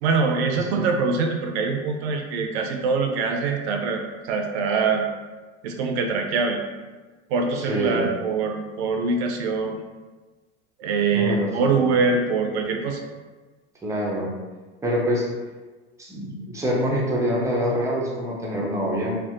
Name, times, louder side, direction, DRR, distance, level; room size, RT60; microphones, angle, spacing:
voice 1, 0.0-5.0 5.6-6.6 7.3-9.8 10.8-13.0, right 4 dB, 60° right, 3 dB, 0.5 m, -24 dB
voice 2, 0.5-0.9 7.5-8.1 11.1-11.9 13.8-14.3 14.8-15.3 16.0-19.2, equal, 10° right, -3 dB, 0.5 m, -26 dB
2.5 x 2.0 x 2.5 m, 1.3 s
figure-of-eight pair, 80°, 38 cm